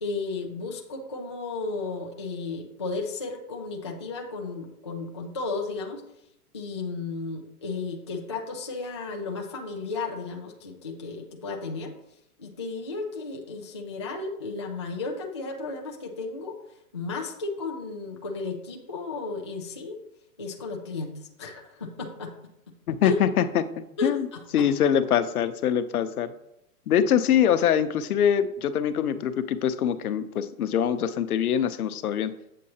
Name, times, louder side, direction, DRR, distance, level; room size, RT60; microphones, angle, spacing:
voice 1, 0.0-6.0 6.5-11.9 12.4-16.6 16.9-20.0 20.4-22.3 23.0-23.1 24.0-24.9, left 3 dB, 20° left, 0 dB, 0.3 m, -34 dB
voice 2, 22.9-23.7 24.0-24.3 24.5-26.3 26.9-32.3, left 9 dB, 75° left, 11 dB, 0.8 m, -23 dB
8.3 x 7.6 x 2.8 m, 0.82 s
hypercardioid pair, 150°, 45 cm